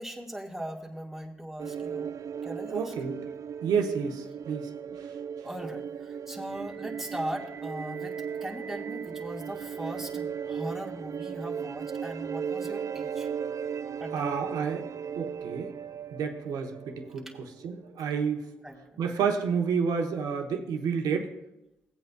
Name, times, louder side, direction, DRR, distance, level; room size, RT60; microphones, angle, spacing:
voice 1, 0.0-2.1 2.4-2.9 5.4-13.3 14.0-14.3 18.6-19.0, right 1 dB, 5° right, -1 dB, 1.8 m, -39 dB
sound 1, 1.6-18.0, right 7 dB, 55° right, 0.3 m, -37 dB
voice 2, 2.7-3.2 3.6-5.1 14.1-14.9 15.2-15.7 16.1-18.5 19.0-21.3, right 6 dB, 85° right, 4 dB, 1.1 m, -30 dB
17.5 x 8.3 x 2.3 m, 0.89 s
supercardioid pair, 50°, 6 cm